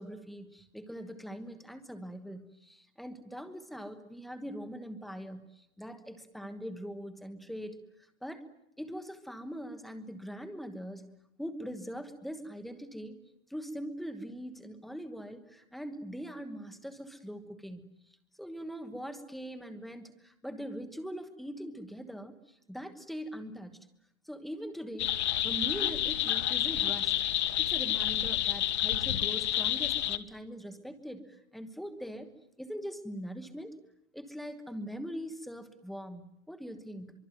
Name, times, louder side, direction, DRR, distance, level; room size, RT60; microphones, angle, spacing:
voice 1, 0.0-7.8 8.2-8.5 8.8-11.1 11.4-13.2 13.5-17.8 18.4-23.7 24.2-25.1 25.4-27.2 27.6-32.3 32.6-33.8 34.1-37.1, equal, ahead, 8 dB, 1.2 m, -42 dB
sound 1, 25.0-30.2, left 12 dB, 55° left, 1.4 m, -29 dB
24.5 x 24.0 x 9.3 m, 0.80 s
hypercardioid pair, 165°, 40 cm